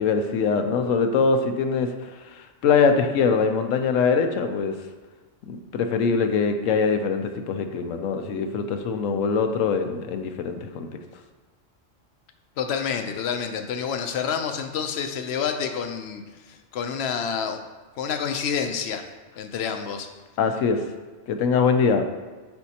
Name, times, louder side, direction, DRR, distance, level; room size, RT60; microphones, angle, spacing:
voice 1, 0.0-1.9 2.3-4.7 5.5-10.9 20.4-20.8 21.3-22.0, left 5 dB, 85° left, 6 dB, 1.0 m, -23 dB
voice 2, 12.6-16.2 16.5-17.6 18.0-19.0 19.4-20.1, left 7 dB, 65° left, 6 dB, 0.8 m, -28 dB
9.1 x 4.3 x 2.8 m, 1.3 s
omnidirectional pair, 1.3 m